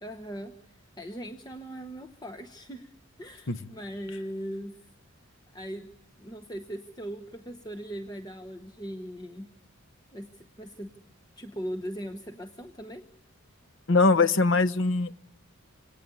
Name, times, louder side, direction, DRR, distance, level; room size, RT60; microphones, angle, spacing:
voice 1, 0.0-2.9 3.2-4.8 5.5-5.9 6.2-9.5 10.1-10.9 11.4-13.0, equal, 20° left, 5 dB, 1.0 m, -39 dB
voice 2, 13.9-15.2, left 3 dB, 60° left, 13 dB, 0.9 m, -22 dB
27.0 x 18.5 x 9.8 m, 0.88 s
head